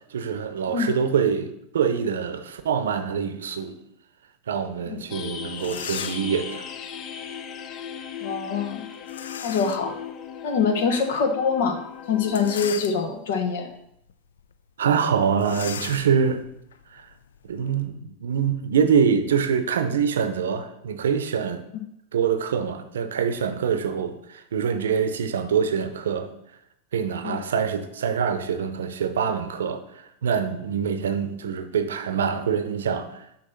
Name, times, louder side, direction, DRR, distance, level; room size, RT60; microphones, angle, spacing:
voice 1, 0.1-3.8 4.5-6.7 14.8-16.4 16.9-17.1 17.4-21.6 22.1-26.3 26.9-29.8 30.2-33.2, right 7 dB, 85° right, 0.6 m, -25 dB
sound 1, 5.1-12.7, left 8 dB, 40° left, 0.6 m, -37 dB
sound 2, 5.2-5.3 5.5-6.4 9.1-9.9 10.5-10.6 12.2-13.3 13.9-14.1 14.4-14.5 15.4-17.8, left 7 dB, 85° left, 0.3 m, -37 dB
voice 2, 8.2-8.8 9.4-10.0 10.4-11.8 12.1-13.7 27.2-27.4, left 5 dB, 70° left, 1.0 m, -24 dB
6.4 x 2.9 x 5.7 m
hypercardioid pair, 105°, 0 cm